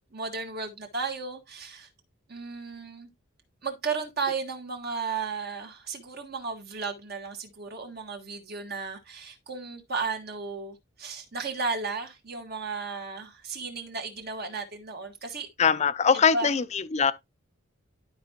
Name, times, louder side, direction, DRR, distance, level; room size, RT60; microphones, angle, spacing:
voice 1, 0.1-1.9 2.3-3.1 3.6-15.5 16.3-16.5, right 4 dB, 50° right, 1.6 m, -34 dB
voice 2, 15.6-17.1, left 6 dB, 35° left, 0.5 m, -22 dB
12.0 x 4.7 x 2.9 m
head